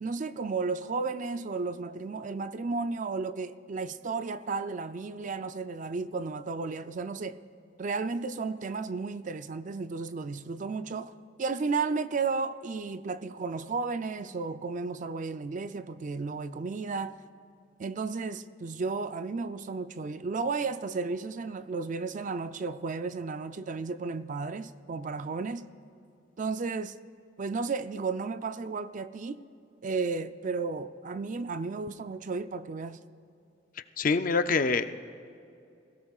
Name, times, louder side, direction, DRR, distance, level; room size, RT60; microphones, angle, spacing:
voice 1, 0.0-7.4 7.8-11.1 11.4-17.2 17.8-25.7 26.4-26.9 27.4-29.4 29.8-33.0, right 4 dB, 45° right, 0.4 m, -33 dB
voice 2, 34.0-34.9, left 4 dB, 50° left, 0.5 m, -25 dB
26.5 x 17.0 x 2.4 m
head